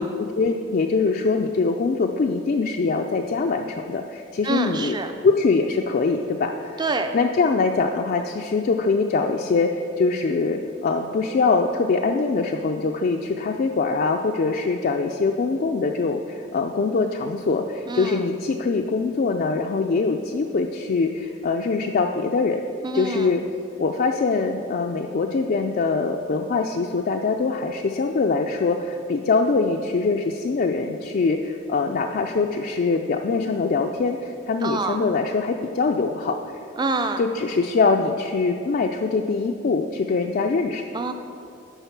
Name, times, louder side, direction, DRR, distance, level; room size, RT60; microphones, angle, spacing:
voice 1, 0.0-5.0 5.2-6.8 7.1-22.6 22.9-23.4 23.8-36.4 37.2-40.8, left 4 dB, 45° left, 3 dB, 0.3 m, -23 dB
voice 2, 4.4-5.1 6.8-7.1 17.9-18.3 22.8-23.4 34.6-35.0 36.8-37.2 40.9-41.1, right 3 dB, 20° right, 7 dB, 0.5 m, -26 dB
11.0 x 4.0 x 5.8 m, 2.5 s
head